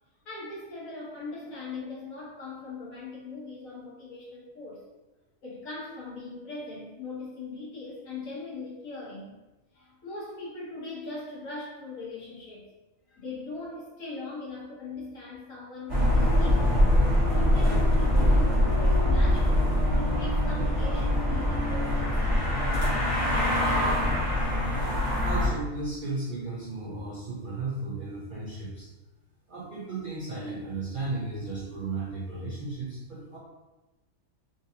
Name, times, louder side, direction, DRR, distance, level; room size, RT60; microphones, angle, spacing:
voice 1, 0.2-4.8 5.4-9.4 9.7-12.7 13.1-16.8 17.2-22.2, left 3 dB, 75° left, -6 dB, 1.4 m, -40 dB
sound 1, 15.9-25.5, left 1 dB, 25° right, 1.1 m, -23 dB
voice 2, 25.2-28.9 29.5-33.4, right 3 dB, 60° right, -5 dB, 0.5 m, -35 dB
3.8 x 2.5 x 2.7 m, 1.1 s
omnidirectional pair, 1.4 m